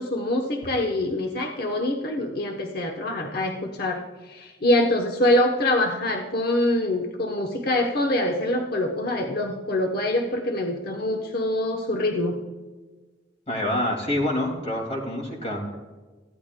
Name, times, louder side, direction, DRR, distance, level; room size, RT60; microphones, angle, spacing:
voice 1, 0.0-12.4, left 1 dB, 55° left, 3 dB, 0.9 m, -25 dB
voice 2, 13.5-15.8, left 1 dB, 35° left, 0 dB, 2.4 m, -27 dB
16.0 x 12.0 x 2.2 m, 1.3 s
head